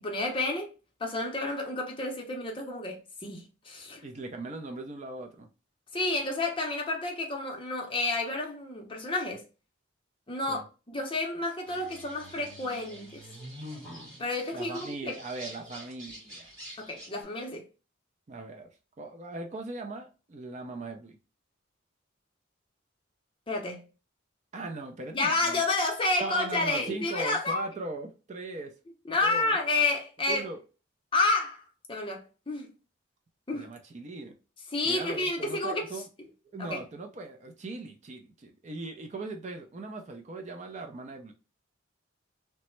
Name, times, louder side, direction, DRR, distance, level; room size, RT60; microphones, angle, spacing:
voice 1, 0.0-0.7 1.0-4.0 5.9-9.4 10.3-13.3 14.2-15.2 16.8-17.7 23.5-23.9 25.1-27.6 29.1-30.5 31.1-32.7 33.5-33.7 34.7-36.0 36.6-36.8, left 2 dB, 25° left, 0.6 m, -30 dB
voice 2, 4.0-5.5 10.5-10.6 14.5-16.5 18.3-18.7 19.0-21.2 24.5-25.6 26.2-28.7 29.2-29.6 30.3-30.6 33.5-34.3 34.9-36.1 36.5-41.3, right 2 dB, 35° right, 0.4 m, -39 dB
sound 1, 11.6-17.2, equal, 20° right, 1.4 m, -46 dB
3.2 x 2.0 x 3.0 m
head